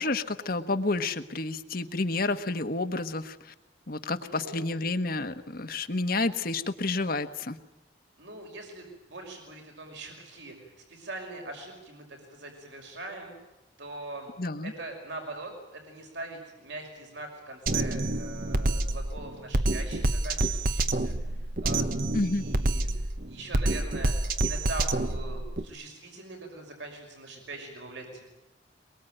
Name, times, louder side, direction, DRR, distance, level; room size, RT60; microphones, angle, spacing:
voice 1, 0.0-3.4 3.9-7.6 14.4-14.7 22.1-22.4, left 3 dB, 50° left, 9 dB, 1.4 m, -30 dB
voice 2, 4.2-4.7 8.2-13.4 13.8-14.3 14.6-24.1 24.4-28.2, right 2 dB, 70° right, 2 dB, 5.8 m, -42 dB
Drum kit, 17.7-25.6, right 2 dB, 50° right, 1.1 m, -28 dB
23.0 x 23.0 x 9.2 m, 0.97 s
head